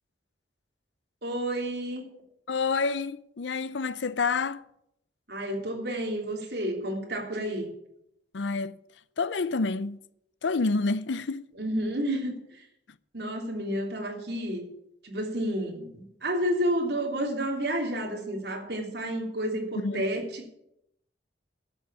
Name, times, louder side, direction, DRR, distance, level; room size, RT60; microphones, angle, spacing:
voice 1, 1.2-2.1 5.3-7.7 11.6-12.6 13.1-14.7 15.0-20.5, right 1 dB, 65° right, 3.1 m, -30 dB
voice 2, 2.5-4.6 8.3-8.8 9.2-10.0 10.4-11.5 19.8-20.1, left 4 dB, 90° left, 0.6 m, -28 dB
11.5 x 7.1 x 9.6 m
head